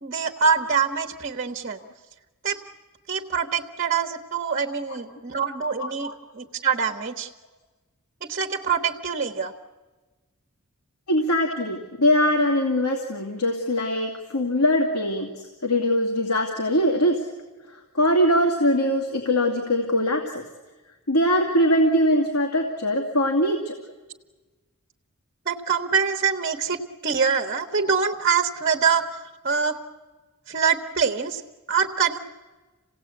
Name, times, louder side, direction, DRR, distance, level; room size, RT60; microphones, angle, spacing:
voice 1, 0.0-1.8 2.4-2.6 3.1-7.3 8.3-9.5 25.5-29.8 30.5-31.4 31.7-32.2, right 6 dB, 40° right, 5 dB, 1.2 m, -24 dB
voice 2, 5.8-6.2 11.1-17.2 17.7-20.4 21.1-23.7, equal, 85° left, 1 dB, 2.6 m, -22 dB
27.5 x 17.5 x 8.5 m, 1.3 s
head